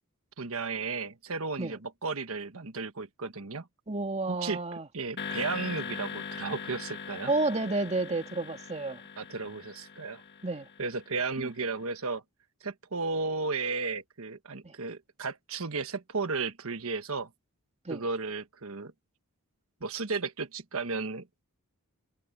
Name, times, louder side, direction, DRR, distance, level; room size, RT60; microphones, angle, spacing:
voice 1, 0.4-3.7 4.3-4.6 4.9-7.3 9.2-10.2 10.8-12.2 12.6-17.3 17.9-18.9 19.8-21.4, right 4 dB, 70° right, 1.4 m, -34 dB
voice 2, 3.9-4.9 7.3-9.0 10.4-10.7 11.4-11.5 14.6-14.7 17.8-18.0, right 2 dB, 30° right, 2.1 m, -31 dB
sound 1, 5.2-11.5, left 6 dB, 50° left, 1.6 m, -41 dB
head